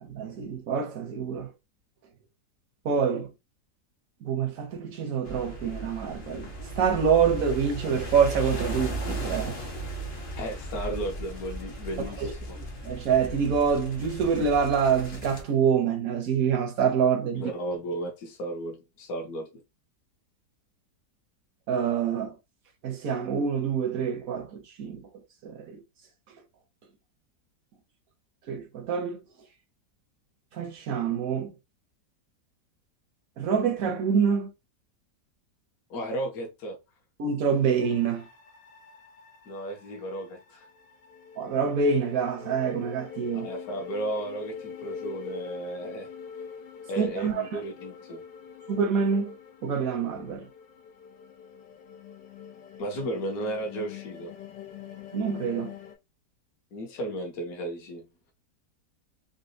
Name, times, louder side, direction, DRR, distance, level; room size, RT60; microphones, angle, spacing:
voice 1, 0.0-1.5 2.8-3.3 4.2-6.5 6.8-9.6 12.2-12.3 12.8-17.5 21.7-22.3 22.8-25.0 25.4-25.8 28.5-29.2 30.5-31.5 33.4-34.5 37.2-38.3 41.4-43.5 47.0-47.6 48.7-49.3 49.6-50.5 55.1-55.7, right 6 dB, 65° right, 0.9 m, -26 dB
sound 1, 5.2-15.4, right 1 dB, 45° left, 0.7 m, -36 dB
voice 2, 10.4-12.4 17.3-19.5 35.9-36.8 39.5-40.7 43.3-46.1 46.9-48.2 52.8-54.3 56.7-58.1, right 1 dB, 60° left, 1.4 m, -34 dB
sound 2, 37.8-55.9, left 7 dB, 90° left, 1.4 m, -44 dB
4.0 x 2.2 x 2.6 m
omnidirectional pair, 1.9 m